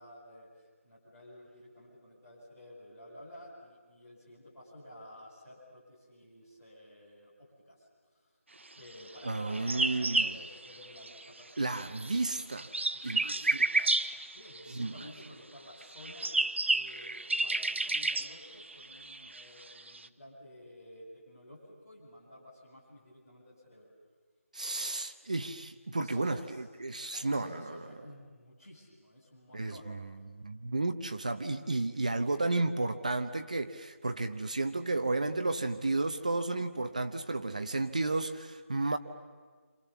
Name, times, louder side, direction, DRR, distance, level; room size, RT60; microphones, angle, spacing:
voice 1, 0.0-8.3 8.7-12.4 12.9-13.4 14.3-23.9 25.9-29.9, left 1 dB, 10° left, -10 dB, 7.5 m, -52 dB
voice 2, 9.2-10.3 11.6-12.7 13.0-13.3 13.8-13.9 14.8-14.9 24.5-27.8 29.5-39.0, right 2 dB, 30° right, 8 dB, 0.9 m, -32 dB
sound 1, 9.2-11.4 11.7-15.3 15.8-20.1, right 2 dB, 55° right, 1.0 m, -31 dB
29.5 x 27.0 x 7.2 m, 1.5 s
figure-of-eight pair, 180°, 8 cm